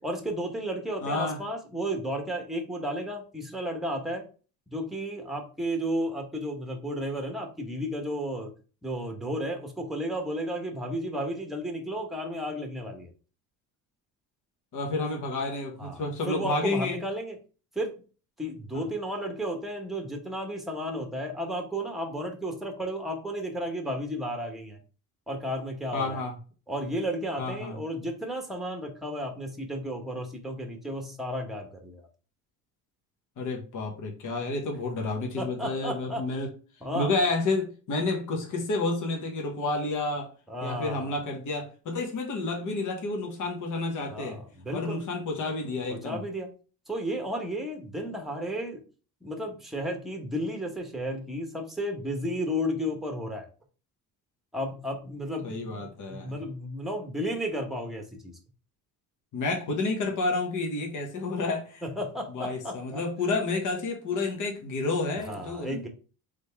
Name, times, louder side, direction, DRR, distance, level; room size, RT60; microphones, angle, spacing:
voice 1, 0.0-4.2 4.7-8.5 8.8-13.1 15.8-17.4 17.7-17.9 18.4-24.8 25.3-26.2 26.7-32.1 35.4-36.2 36.8-37.1 40.5-41.2 44.1-45.0 45.9-46.5 46.9-48.8 49.2-53.5 54.5-58.4 61.8-63.0 65.3-65.9, equal, ahead, 3 dB, 1.0 m, -33 dB
voice 2, 1.0-1.4 14.7-17.0 18.7-18.8 25.9-26.3 27.4-27.8 33.4-36.5 36.9-40.3 40.6-44.4 44.7-46.2 55.4-56.3 59.3-61.8 62.3-65.8, left 3 dB, 50° left, 1 dB, 1.4 m, -30 dB
3.9 x 3.5 x 3.4 m, 0.36 s
cardioid pair, 120°, 38 cm